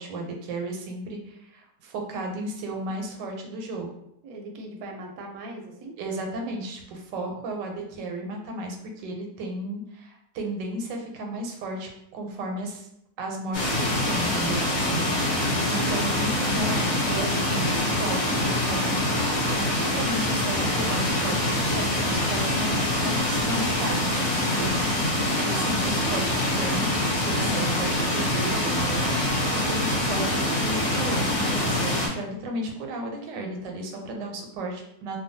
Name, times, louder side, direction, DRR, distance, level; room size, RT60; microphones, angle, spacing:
voice 1, 0.0-3.9 6.0-12.9 13.2-19.0 19.5-26.8 27.2-35.2, right 1 dB, 90° right, 2 dB, 1.3 m, -34 dB
voice 2, 4.2-6.0 14.8-15.5 30.1-30.4, right 1 dB, 70° right, 1 dB, 1.0 m, -40 dB
sound 1, 13.5-32.1, left 1 dB, 55° left, 1.1 m, -25 dB
2.9 x 2.2 x 2.6 m, 0.77 s
omnidirectional pair, 1.9 m